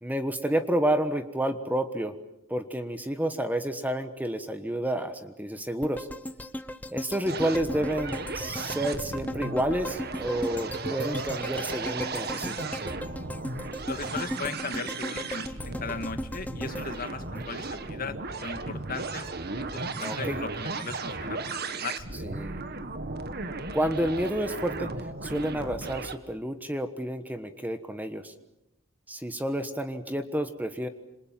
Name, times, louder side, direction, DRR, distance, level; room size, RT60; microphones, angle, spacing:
voice 1, 0.0-2.1 2.5-6.1 6.9-12.7 20.0-20.4 22.2-22.5 23.7-24.9 25.2-28.3 29.1-30.9, right 1 dB, 10° right, 9 dB, 1.3 m, -30 dB
sound 1, 5.8-18.0 18.4-18.5, equal, 10° left, 1.0 m, -37 dB
sound 2, 7.3-26.2, right 3 dB, 50° right, 1.7 m, -35 dB
voice 2, 13.9-19.3 19.5-22.0, left 4 dB, 45° left, 9 dB, 1.9 m, -37 dB
27.5 x 26.5 x 7.6 m, 0.90 s
head